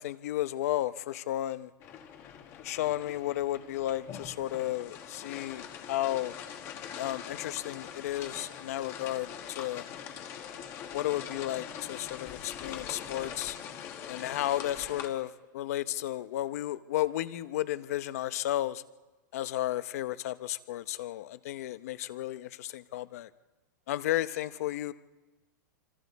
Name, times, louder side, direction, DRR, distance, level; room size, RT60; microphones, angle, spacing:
voice 1, 0.0-1.7 2.6-6.3 7.0-9.8 10.9-13.6 14.1-18.8 19.3-23.3 23.9-24.9, left 14 dB, 50° left, 14 dB, 0.8 m, -33 dB
sound 1, 1.8-15.1, left 8 dB, 25° left, 1.2 m, -43 dB
26.0 x 25.5 x 4.1 m, 1.2 s
supercardioid pair, 170°, 10 cm